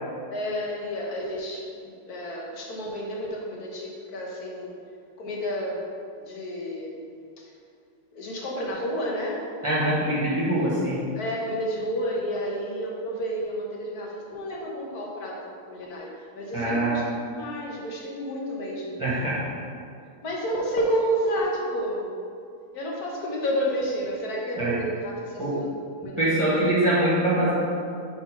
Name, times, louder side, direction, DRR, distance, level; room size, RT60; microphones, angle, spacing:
voice 1, 0.3-4.7 5.2-5.8 6.2-7.1 7.4-7.5 8.1-9.4 10.6-10.8 11.1-15.4 15.7-19.0 20.2-22.0 22.7-25.7 26.0-26.2, equal, 70° left, -2 dB, 1.6 m, -30 dB
voice 2, 9.6-11.1 16.5-17.0 19.0-19.4 24.6-24.8 25.4-25.6 26.2-27.5, right 1 dB, 20° right, -9 dB, 1.6 m, -23 dB
6.8 x 4.0 x 5.3 m, 2.4 s
omnidirectional pair, 1.7 m